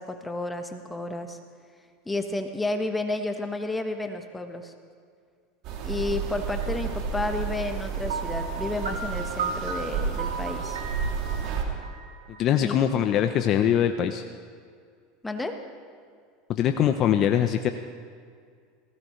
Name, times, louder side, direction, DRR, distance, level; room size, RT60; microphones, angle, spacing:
voice 1, 0.0-1.4 2.1-4.7 5.8-10.8 12.6-12.8 15.2-15.5, left 2 dB, 10° left, 6 dB, 1.3 m, -31 dB
sound 1, 5.6-11.6, right 5 dB, 55° right, 2.7 m, -31 dB
Piano, 8.1-12.9, right 5 dB, 85° right, 1.5 m, -35 dB
voice 2, 12.4-14.2 16.5-17.7, left 10 dB, 45° left, 7 dB, 0.7 m, -22 dB
19.0 x 17.0 x 3.2 m, 2.1 s
hypercardioid pair, 100°, 0 cm